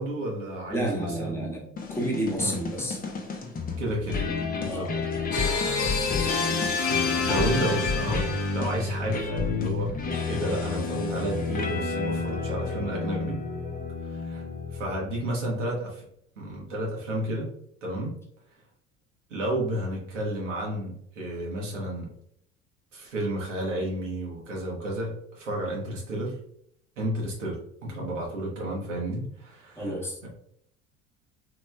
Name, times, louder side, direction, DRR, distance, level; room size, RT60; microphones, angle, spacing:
voice 1, 0.0-1.5 2.4-2.6 3.8-4.3 4.6-4.9 7.1-9.9 10.3-13.4 14.0-14.4 14.7-16.0 16.4-17.5 17.8-18.2 19.3-22.1 22.9-26.4 27.0-30.3, right 1 dB, 90° right, -3 dB, 1.0 m, -31 dB
voice 2, 0.7-3.0 4.7-4.9 29.8-30.2, right 1 dB, 5° left, -2 dB, 1.0 m, -30 dB
sound 1, 1.8-15.2, left 4 dB, 25° left, 0.6 m, -31 dB
sound 2, 5.3-9.0, left 4 dB, 55° left, 0.7 m, -28 dB
3.0 x 2.9 x 2.2 m, 0.70 s
hypercardioid pair, 65°, 36 cm